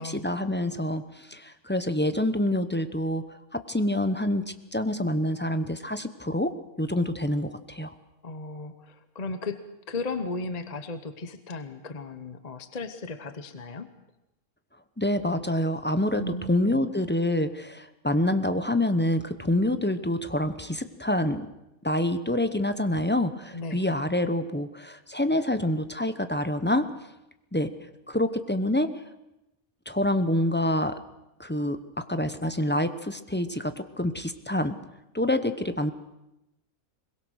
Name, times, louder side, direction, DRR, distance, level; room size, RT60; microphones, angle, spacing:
voice 1, 0.0-3.2 3.5-4.4 4.7-7.9 15.0-21.5 21.8-26.9 27.5-27.7 28.1-28.9 29.9-31.0 31.4-34.8 35.1-35.9, left 1 dB, 10° left, 10 dB, 0.7 m, -27 dB
voice 2, 8.2-13.9 16.2-16.8 23.5-23.8, left 3 dB, 30° left, 10 dB, 1.0 m, -36 dB
22.5 x 21.5 x 6.4 m, 0.90 s
omnidirectional pair, 1.5 m